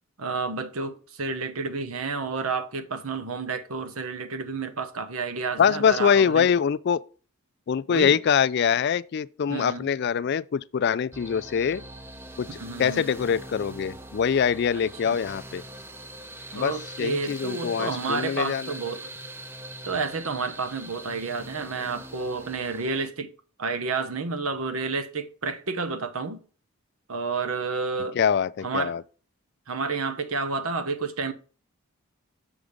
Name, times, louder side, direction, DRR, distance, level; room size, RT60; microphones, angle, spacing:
voice 1, 0.2-6.5 7.9-8.2 9.5-9.9 12.5-13.0 15.0-15.2 16.5-19.1 19.8-23.3 23.6-26.4 27.1-28.2 28.6-28.9 29.7-31.3, right 4 dB, 80° right, 1.0 m, -30 dB
voice 2, 5.6-7.0 7.7-11.8 12.4-15.6 16.5-18.8 28.1-29.0, left 7 dB, 50° left, 0.3 m, -24 dB
sound 1, 11.1-23.1, right 1 dB, 10° right, 0.5 m, -42 dB
7.0 x 5.0 x 5.2 m
head